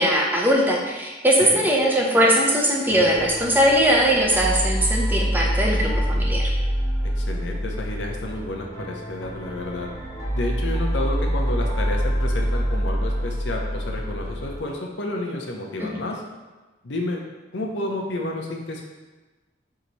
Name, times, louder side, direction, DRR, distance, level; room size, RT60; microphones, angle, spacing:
voice 1, 0.0-6.5 15.8-15.9, equal, 10° right, -2 dB, 0.6 m, -20 dB
sound 1, 2.9-14.6, equal, 20° left, 0.9 m, -26 dB
voice 2, 7.0-9.9 10.3-16.2 16.8-17.2 17.5-18.8, left 2 dB, 80° left, 0 dB, 0.7 m, -30 dB
4.6 x 2.8 x 4.0 m, 1.2 s
head